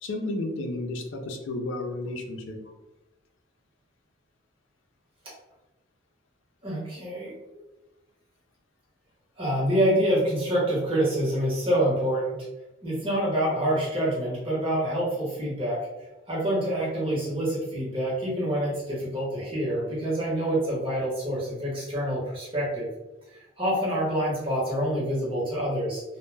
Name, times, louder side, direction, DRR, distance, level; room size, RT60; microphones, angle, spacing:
voice 1, 0.0-2.6, left 2 dB, 75° left, 3 dB, 0.5 m, -32 dB
voice 2, 6.6-7.6 9.4-12.4 12.8-15.8 16.3-22.9 23.6-26.0, right 1 dB, 25° right, -6 dB, 0.9 m, -26 dB
2.2 x 2.1 x 3.2 m, 1.0 s
head